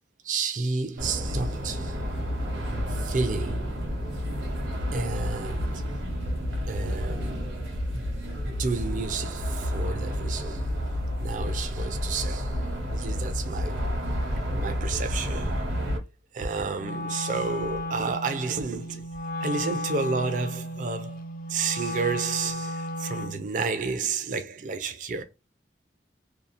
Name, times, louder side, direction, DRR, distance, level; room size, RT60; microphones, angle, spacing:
voice 1, 0.2-2.0 2.9-3.9 4.9-6.0 6.7-7.6 8.6-10.7 11.2-13.9 14.3-16.1 16.3-19.1 19.4-25.2, right 4 dB, 45° right, 0.4 m, -31 dB
sound 1, 1.0-16.0, equal, 80° right, 0.8 m, -30 dB
Wind instrument woodwind instrument, 16.8-23.5, left 1 dB, 50° left, 0.4 m, -34 dB
2.7 x 2.0 x 2.4 m
head